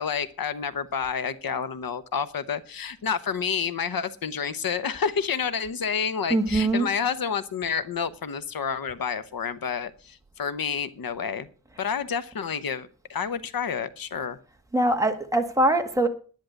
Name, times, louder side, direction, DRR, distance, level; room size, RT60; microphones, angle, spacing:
voice 1, 0.0-11.5 11.8-14.4, left 6 dB, 85° left, 1.0 m, -29 dB
voice 2, 6.3-6.9 14.7-16.1, right 1 dB, 10° right, 1.7 m, -22 dB
10.5 x 10.5 x 6.4 m
wide cardioid pair, 145°, 34 cm